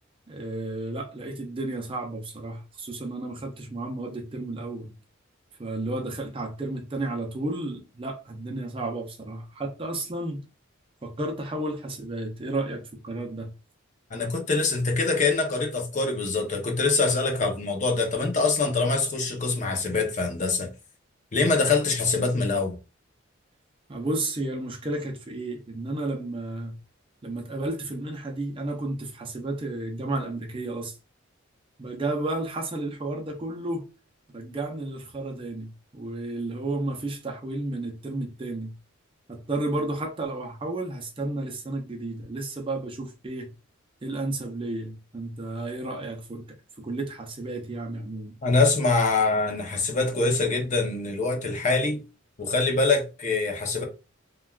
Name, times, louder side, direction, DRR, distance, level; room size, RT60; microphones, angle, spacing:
voice 1, 0.3-4.9 5.6-10.4 11.0-13.5 23.9-26.8 27.2-31.0 31.8-33.8 34.3-38.7 39.3-43.5 44.0-48.4, right 2 dB, 25° right, 0.5 m, -32 dB
voice 2, 14.1-20.7 21.3-22.7 48.4-52.0 52.4-53.8, left 3 dB, 35° left, 0.6 m, -24 dB
3.3 x 2.3 x 2.3 m
head